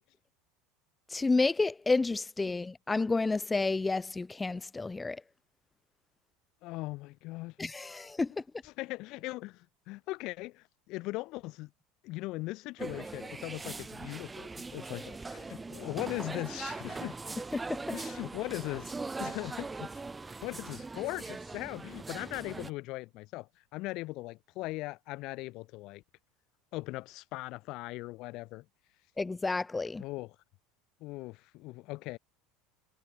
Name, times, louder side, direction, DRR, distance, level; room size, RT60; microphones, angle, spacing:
voice 1, 1.1-5.2 7.6-8.4 17.5-17.8 29.2-30.0, left 3 dB, 15° left, 0.5 m, -30 dB
voice 2, 6.6-7.6 8.6-11.7 12.0-17.2 17.9-18.9 19.2-20.0 20.4-26.0 26.7-28.6 30.0-30.4 31.0-32.2, left 20 dB, 55° left, 1.1 m, -39 dB
sound 1, 12.8-22.7, right 3 dB, 15° right, 3.2 m, -41 dB
hypercardioid pair, 75°, 0 cm